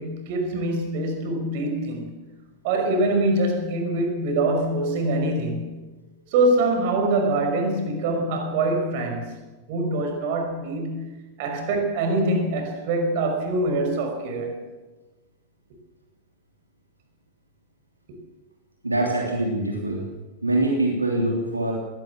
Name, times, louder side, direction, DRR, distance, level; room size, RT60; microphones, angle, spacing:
voice 1, 0.0-2.1 2.6-5.7 6.3-9.4 9.7-11.1 11.4-14.6, right 2 dB, 50° right, 5.7 m, -24 dB
voice 2, 18.8-20.0 20.4-21.7, right 1 dB, 85° right, 3.2 m, -24 dB
21.5 x 17.5 x 7.5 m
figure-of-eight pair, 90°, 0 cm